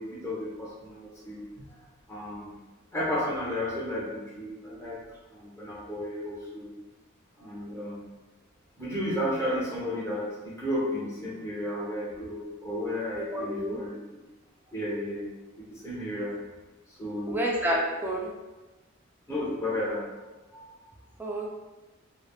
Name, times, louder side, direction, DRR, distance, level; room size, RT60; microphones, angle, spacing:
voice 1, 0.0-1.4 2.1-2.5 2.9-5.0 5.3-6.7 7.4-8.0 8.8-13.9 14.7-15.3 15.6-16.3 17.0-17.3 19.3-20.2 20.5-20.7, left 1 dB, 15° left, -6 dB, 0.8 m, -33 dB
voice 2, 13.3-13.8 17.3-18.3 21.2-21.5, right 1 dB, 10° right, -3 dB, 0.4 m, -29 dB
3.3 x 2.0 x 2.2 m, 1.1 s
head